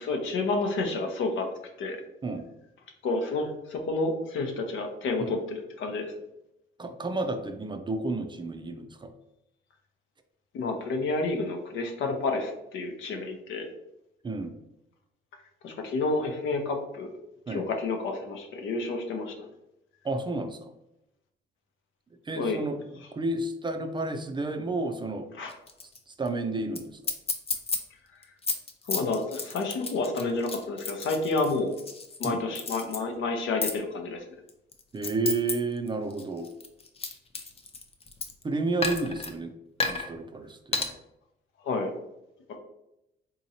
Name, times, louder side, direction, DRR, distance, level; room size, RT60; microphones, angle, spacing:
voice 1, 0.0-1.5 1.8-2.0 3.0-6.1 10.5-13.7 15.6-17.1 17.5-19.5 22.4-22.6 25.4-25.5 28.1-28.2 28.8-31.7 32.2-34.2 41.6-41.9 42.5-42.6, left 3 dB, 75° left, 4 dB, 0.7 m, -30 dB
voice 2, 6.8-9.1 14.2-14.6 17.5-17.6 20.0-20.7 22.3-22.8 23.1-25.3 26.2-26.9 32.2-32.4 34.9-36.5 38.4-39.5 39.8-40.9, right 3 dB, 25° right, 6 dB, 0.4 m, -31 dB
sound 1, 25.5-26.0 26.3-26.4 26.8-26.9 27.0-27.8 28.2-32.3 32.6-33.0 33.6-33.8 34.5-35.5 35.9-38.4 38.8-39.3 39.8-40.1 40.7-40.9, left 4 dB, 30° left, 0.5 m, -31 dB
3.8 x 2.9 x 2.7 m, 0.86 s
cardioid pair, 90°, 20 cm